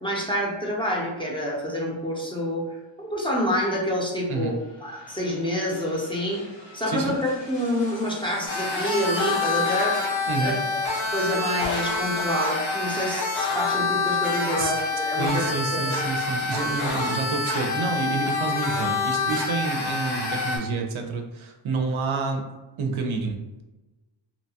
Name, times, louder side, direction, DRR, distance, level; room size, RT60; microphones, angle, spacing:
voice 1, 0.0-2.6 3.0-4.5 4.8-6.4 6.7-10.0 10.4-10.5 11.1-15.9, equal, 10° left, -4 dB, 0.5 m, -27 dB
sound 1, 4.0-13.3 13.7-13.8, left 2 dB, 65° left, 0.7 m, -45 dB
sound 2, 8.5-20.6, left 3 dB, 80° left, 1.1 m, -27 dB
voice 2, 15.2-22.4 22.8-23.6, right 4 dB, 80° right, 3 dB, 0.5 m, -28 dB
2.8 x 2.2 x 2.7 m, 1.1 s
wide cardioid pair, 110°, 48 cm